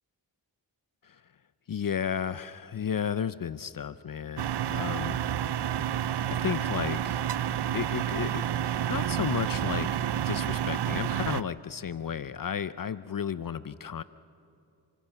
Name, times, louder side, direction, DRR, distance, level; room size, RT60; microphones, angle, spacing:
voice 1, 1.7-5.3 6.3-7.2 7.7-14.0, left 8 dB, 50° left, 15 dB, 0.6 m, -33 dB
sound 1, 4.4-11.4, right 10 dB, 65° right, 0.6 m, -29 dB
27.0 x 24.0 x 5.8 m, 2.5 s
cardioid pair, 50°, 44 cm